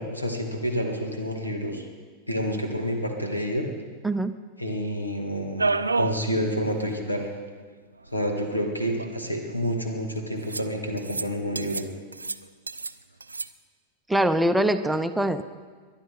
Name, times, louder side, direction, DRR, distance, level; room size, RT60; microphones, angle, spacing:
voice 1, 0.0-1.9 2.3-3.7 4.6-7.3 8.1-11.8, equal, 85° left, 4 dB, 2.1 m, -29 dB
sound 1, 5.6-6.2 6.6-6.7 6.9-7.0 8.1-8.2 8.9-9.6 10.5-10.7 11.0-11.3 11.6-11.9 12.1-12.9 13.2-13.5, right 3 dB, 80° right, 0.4 m, -29 dB
voice 2, 14.1-15.5, right 1 dB, 5° right, 9 dB, 0.6 m, -23 dB
22.0 x 11.5 x 5.2 m, 1.5 s
figure-of-eight pair, 90°, 0 cm